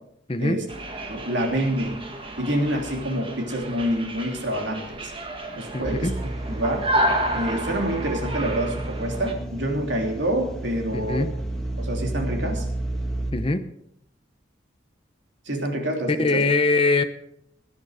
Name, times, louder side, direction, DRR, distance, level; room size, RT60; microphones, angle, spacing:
voice 1, 0.3-0.6 5.7-6.1 10.9-11.3 13.3-13.6 16.1-17.0, left 3 dB, 30° left, 9 dB, 0.8 m, -22 dB
sound 1, 0.7-9.3, right 1 dB, 30° right, 1.5 m, -31 dB
voice 2, 1.1-2.0 2.4-5.1 5.6-6.1 6.5-6.9 7.3-11.3 11.8-12.7 15.4-16.4, right 1 dB, 75° right, 1 dB, 3.1 m, -27 dB
sound 2, 5.8-13.3, right 1 dB, 5° left, 1.8 m, -32 dB
17.5 x 10.5 x 5.0 m, 0.76 s
head